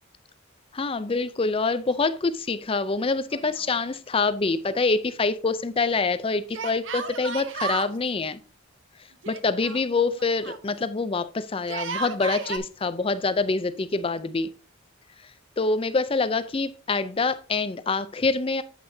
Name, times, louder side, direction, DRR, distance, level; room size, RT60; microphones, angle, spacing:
voice 1, 0.7-8.4 9.3-14.5 15.6-18.6, left 3 dB, 25° left, 0.5 m, -26 dB
Yell, 3.3-4.2 4.4-4.5 6.5-8.0 9.2-10.6 11.6-12.6, right 5 dB, 60° right, 0.8 m, -33 dB
8.5 x 8.4 x 2.7 m
head